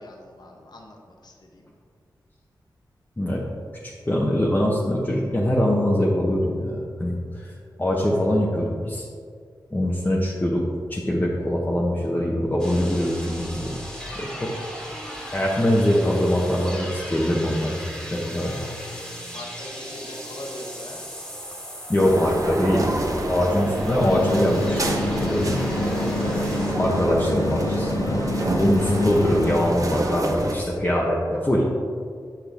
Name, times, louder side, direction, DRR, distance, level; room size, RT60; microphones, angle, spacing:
voice 1, 0.0-1.7 18.4-21.0 26.0-27.1, left 1 dB, 65° left, 1 dB, 1.1 m, -42 dB
voice 2, 3.8-7.5 7.8-9.1 9.7-10.6 10.9-13.8 14.1-14.5 15.3-17.8 18.1-18.5 21.9-22.9 23.3-24.8 25.1-25.6 26.8-28.2 28.6-31.6, equal, 25° left, -4 dB, 1.0 m, -23 dB
sound 1, 12.6-26.7, equal, 5° left, 1.8 m, -38 dB
sound 2, 22.0-30.6, right 1 dB, 45° right, 0.9 m, -28 dB
sound 3, 24.0-29.6, left 2 dB, 45° left, 0.6 m, -27 dB
8.1 x 5.9 x 3.5 m, 2.2 s
wide cardioid pair, 70°, 8 cm